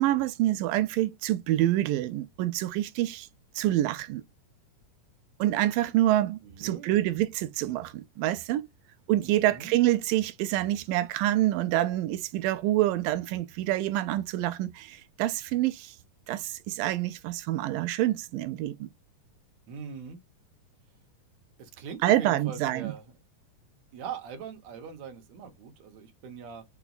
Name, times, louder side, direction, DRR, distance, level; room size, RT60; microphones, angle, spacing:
voice 1, 0.0-3.3 3.6-4.2 5.4-8.7 9.1-16.0 16.3-18.9 22.0-22.9, right 14 dB, 90° right, 2.2 m, -27 dB
voice 2, 6.4-7.2 9.2-9.7 19.7-20.2 21.6-23.1 23.9-26.6, right 6 dB, 65° right, 2.2 m, -42 dB
5.9 x 2.3 x 4.0 m
omnidirectional pair, 3.8 m